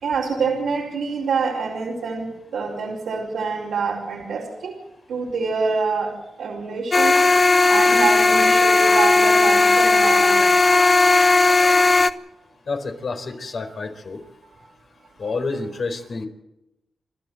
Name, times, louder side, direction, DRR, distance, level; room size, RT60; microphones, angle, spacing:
voice 1, 0.0-4.7 5.1-7.2 7.7-10.4 15.2-15.3, right 4 dB, 90° right, -3 dB, 4.5 m, -26 dB
sound 1, 6.9-12.1, left 3 dB, 40° left, 1.1 m, -16 dB
voice 2, 12.7-14.2 15.2-16.3, left 3 dB, 60° left, 4 dB, 4.4 m, -29 dB
30.0 x 12.5 x 7.8 m, 0.91 s
cardioid pair, 65°, 0 cm